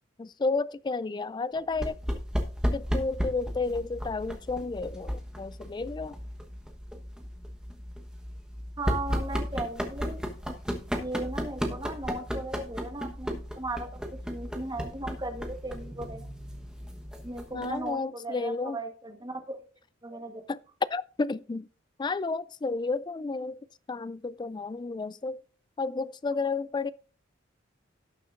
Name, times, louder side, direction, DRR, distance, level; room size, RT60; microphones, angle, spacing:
voice 1, 0.2-2.0 2.7-6.2 17.5-18.8 20.5-20.6 20.9-21.7 22.0-23.6 23.9-25.4 25.8-26.9, left 3 dB, 20° left, 0.3 m, -31 dB
sound 1, 1.7-17.9, equal, 5° right, 1.1 m, -34 dB
voice 2, 8.8-10.2 11.0-13.9 14.2-16.3 17.2-19.6 20.0-20.4, right 2 dB, 20° right, 1.3 m, -37 dB
17.5 x 6.6 x 2.5 m
head